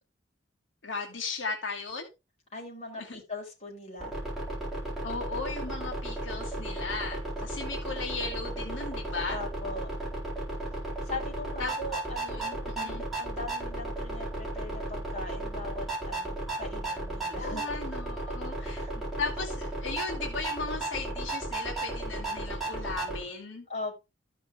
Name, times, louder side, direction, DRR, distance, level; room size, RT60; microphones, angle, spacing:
voice 1, 0.8-2.1 2.9-3.2 5.0-9.4 11.6-11.7 12.2-13.0 17.4-23.7, left 4 dB, 80° left, 1.6 m, -36 dB
voice 2, 2.5-4.1 9.3-9.9 11.0-17.6 18.6-18.9 23.7-24.0, left 2 dB, 35° left, 5.1 m, -40 dB
sound 1, 4.0-23.2, right 1 dB, ahead, 4.6 m, -35 dB
13.5 x 5.8 x 3.2 m
head